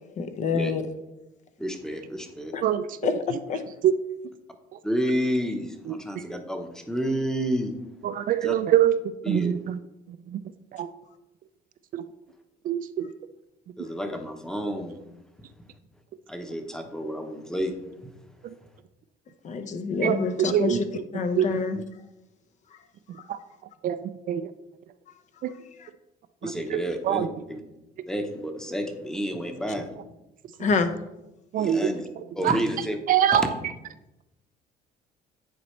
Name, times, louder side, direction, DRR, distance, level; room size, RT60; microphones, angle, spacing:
voice 1, 0.2-0.8 2.5-2.6 3.0-3.6 19.4-20.8 21.1-21.8 23.2-23.3 25.8-25.9 30.6-30.9, left 5 dB, 45° left, 9 dB, 0.6 m, -27 dB
voice 2, 1.6-2.5 4.8-7.7 8.4-8.5 9.2-9.5 13.8-15.0 16.3-17.7 18.0-18.1 26.4-27.6 28.1-29.9 31.6-32.1 32.4-32.9 33.3-33.5, equal, 5° left, 5 dB, 0.8 m, -30 dB
voice 3, 2.6-3.4 3.8-3.9 4.7-4.8 5.8-6.2 8.0-8.9 9.3-9.8 10.3-10.4 10.7-10.9 11.9-12.1 12.6-13.1 18.4-18.5 20.0-21.0 21.4-21.6 23.3-23.4 23.8-24.5 25.4-25.5 26.4-27.3 31.5-31.9 32.2-33.7, right 10 dB, 55° right, 12 dB, 0.4 m, -25 dB
9.6 x 4.2 x 3.1 m, 0.95 s
cardioid pair, 110°, 17 cm